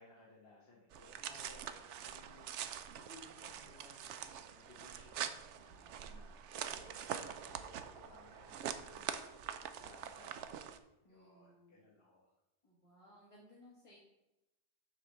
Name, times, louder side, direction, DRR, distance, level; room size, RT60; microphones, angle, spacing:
voice 1, 0.0-5.2 6.0-7.1 7.4-10.7 11.1-12.3, left 3 dB, 60° left, -5 dB, 1.5 m, -61 dB
sound 1, 0.9-10.8, right 9 dB, 80° right, 0.9 m, -45 dB
voice 2, 5.6-6.2 11.0-11.8 12.6-14.0, left 1 dB, 30° left, -7 dB, 1.6 m, -62 dB
7.6 x 3.2 x 6.3 m, 0.96 s
omnidirectional pair, 1.2 m